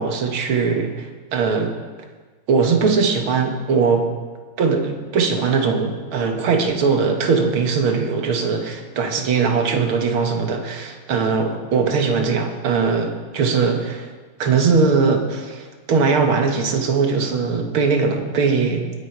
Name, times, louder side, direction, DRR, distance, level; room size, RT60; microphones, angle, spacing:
voice 1, 0.0-1.7 2.5-4.1 4.6-14.1 14.4-18.8, right 5 dB, 75° right, 4 dB, 2.2 m, -20 dB
21.0 x 8.7 x 4.6 m, 1.4 s
omnidirectional pair, 2.3 m